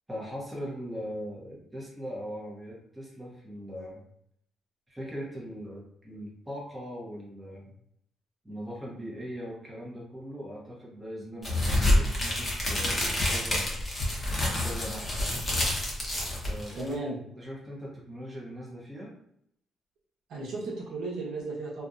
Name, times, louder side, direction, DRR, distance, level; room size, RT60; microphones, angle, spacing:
voice 1, 0.1-4.0 4.9-7.7 8.4-13.8 14.6-15.1 16.5-17.0 17.3-19.1, equal, 10° right, -4 dB, 1.0 m, -40 dB
sound 1, 11.4-16.9, left 1 dB, 25° left, 1.0 m, -27 dB
voice 2, 16.7-17.2 20.3-21.9, right 3 dB, 80° right, -4 dB, 0.9 m, -35 dB
2.7 x 2.4 x 2.4 m, 0.71 s
cardioid pair, 90°, 0 cm